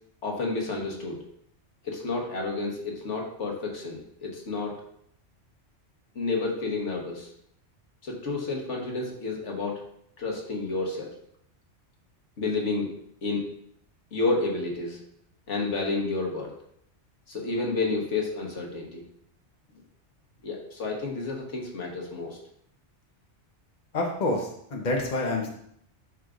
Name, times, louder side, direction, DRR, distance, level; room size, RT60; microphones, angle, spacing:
voice 1, 0.2-1.2 1.8-4.8 6.1-7.3 8.0-9.8 10.2-11.1 12.4-12.9 13.2-13.5 14.1-15.0 15.5-16.5 17.3-19.1 20.4-22.4, left 3 dB, 80° left, 0 dB, 1.6 m, -30 dB
voice 2, 23.9-25.5, left 2 dB, 40° left, 0 dB, 1.2 m, -27 dB
11.0 x 4.8 x 2.6 m, 0.69 s
omnidirectional pair, 1.2 m